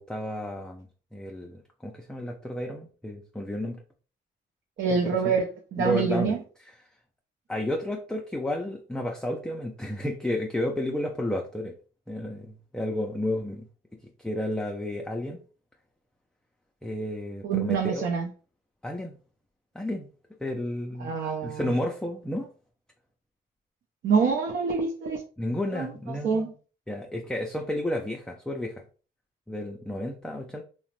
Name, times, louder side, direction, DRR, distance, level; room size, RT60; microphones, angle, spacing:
voice 1, 0.0-3.8 4.9-5.3 5.8-6.7 7.5-11.7 12.1-13.6 14.2-15.4 16.8-18.1 18.8-19.2 19.7-20.1 20.4-21.1 21.4-22.5 25.4-26.5 26.9-28.8 29.5-30.6, left 1 dB, 5° left, 0.4 m, -32 dB
voice 2, 4.8-5.5 5.7-6.4 17.4-18.3 21.0-21.7 24.0-25.2 25.7-25.9 26.2-26.5, right 5 dB, 70° right, 0.5 m, -26 dB
2.8 x 2.1 x 3.0 m
cardioid pair, 90°, 20 cm